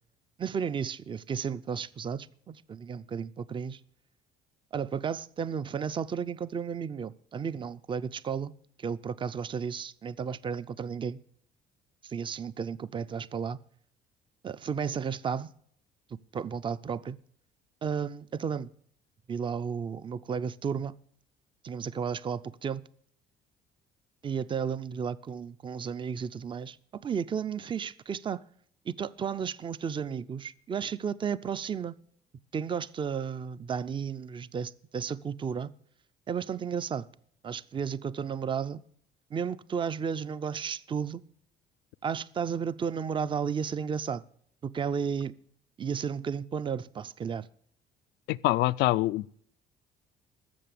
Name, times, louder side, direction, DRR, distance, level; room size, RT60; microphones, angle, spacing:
voice 1, 0.4-3.8 4.7-8.5 8.8-11.2 12.0-13.6 14.4-15.5 16.3-17.2 17.8-18.7 19.3-21.0 21.6-22.8 24.2-28.4 28.9-31.9 32.5-35.7 36.3-37.1 37.4-38.8 39.3-41.2 42.0-44.2 44.6-45.4 45.8-47.5, right 6 dB, 30° right, 0.5 m, -33 dB
voice 2, 48.3-49.3, left 17 dB, 85° left, 0.4 m, -25 dB
14.0 x 6.9 x 8.4 m
cardioid pair, 110°, 17 cm